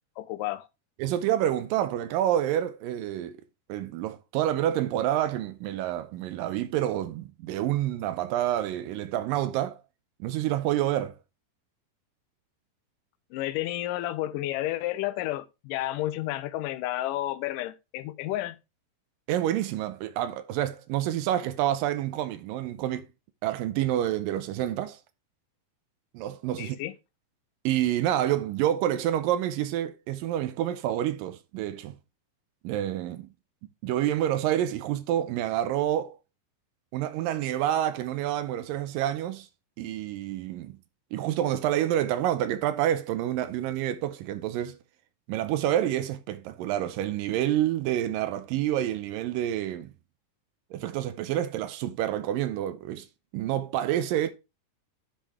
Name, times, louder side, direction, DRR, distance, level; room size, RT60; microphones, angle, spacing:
voice 1, 0.2-0.7 13.3-18.6 26.6-26.9, left 15 dB, 80° left, 2.2 m, -31 dB
voice 2, 1.0-3.4 3.7-9.8 10.2-11.2 19.3-23.1 23.4-25.0 26.1-26.8 27.6-32.0 32.6-33.3 33.8-36.2 36.9-39.5 39.8-40.8 41.1-44.8 45.3-49.9 50.7-53.1 53.3-54.3, right 12 dB, 85° right, 2.3 m, -28 dB
10.5 x 5.2 x 3.4 m
omnidirectional pair, 4.0 m